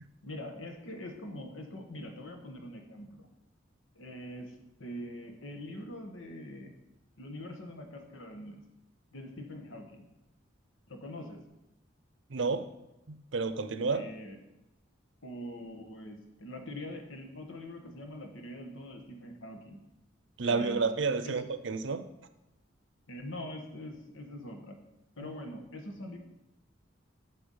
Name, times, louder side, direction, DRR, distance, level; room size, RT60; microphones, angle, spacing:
voice 1, 0.2-3.3 3.9-6.7 7.2-8.6 9.1-10.1 10.9-11.4 13.9-14.4 15.2-19.8 20.4-20.8 21.2-21.4 23.1-24.8 25.2-26.2, left 1 dB, 85° left, 4 dB, 1.4 m, -43 dB
voice 2, 12.3-12.7 13.1-14.0 20.4-22.1 25.2-25.3, right 4 dB, 70° right, 11 dB, 0.6 m, -30 dB
7.1 x 6.9 x 5.6 m, 0.92 s
head